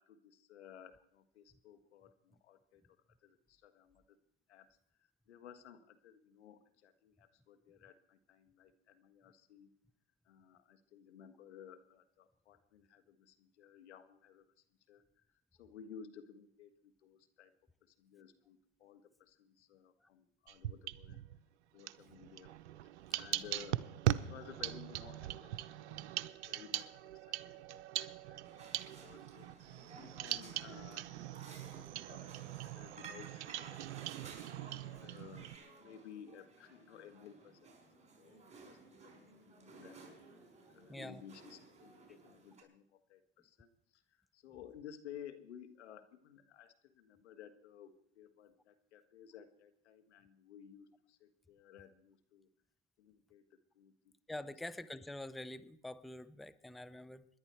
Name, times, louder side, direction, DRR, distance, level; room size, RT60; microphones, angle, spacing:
voice 1, 0.0-4.2 4.5-9.7 10.2-15.2 15.5-17.5 17.8-21.2 21.7-22.5 22.8-23.8 24.2-26.0 26.2-28.7 29.0-29.5 30.0-33.8 34.6-40.2 40.7-52.5 53.0-54.1, left 8 dB, 85° left, 10 dB, 1.5 m, -56 dB
sound 1, 20.5-21.4 21.8-35.6, right 13 dB, 85° right, 0.7 m, -41 dB
sound 2, 28.4-42.6, right 4 dB, 20° right, 4.8 m, -56 dB
voice 2, 40.9-41.2 54.3-57.3, left 1 dB, ahead, 14 dB, 0.6 m, -46 dB
26.0 x 11.0 x 4.5 m, 0.69 s
hypercardioid pair, 95°, 33 cm